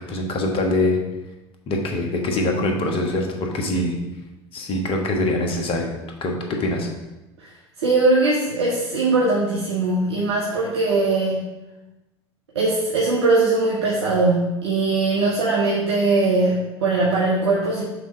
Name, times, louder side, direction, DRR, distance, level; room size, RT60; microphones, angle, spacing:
voice 1, 0.1-1.0 1.7-4.0 4.5-5.9 6.2-6.3 6.6-6.9, left 2 dB, 40° left, 2 dB, 1.4 m, -23 dB
voice 2, 7.8-11.4 12.5-17.8, right 3 dB, 70° right, -4 dB, 1.1 m, -20 dB
6.4 x 3.7 x 5.2 m, 1.0 s
figure-of-eight pair, 70°, 15 cm